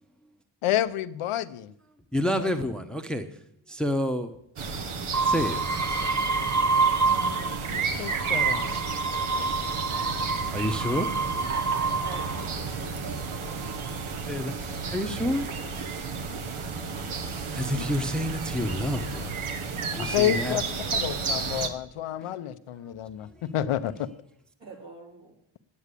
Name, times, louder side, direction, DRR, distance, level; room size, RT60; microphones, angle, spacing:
voice 1, 0.6-1.7 2.4-2.5 7.7-8.8 17.8-17.9 20.0-20.6 20.9-24.1, left 12 dB, 85° left, 12 dB, 0.8 m, -29 dB
voice 2, 2.1-3.2 3.7-4.3 5.2-5.6 6.5-6.6 10.0-10.1 10.5-11.0 14.3-14.5 14.9-15.5 17.5-19.4 19.9-20.6, equal, ahead, 7 dB, 1.0 m, -28 dB
sound 1, 4.6-21.7, right 5 dB, 75° right, 1.5 m, -32 dB
sound 2, 5.1-7.7 8.0-12.6 13.3-13.9, right 3 dB, 35° right, 1.1 m, -28 dB
voice 3, 11.2-14.9 24.6-25.3, right 3 dB, 55° right, -1 dB, 4.2 m, -45 dB
9.6 x 9.4 x 8.3 m, 0.73 s
cardioid pair, 70°, 50 cm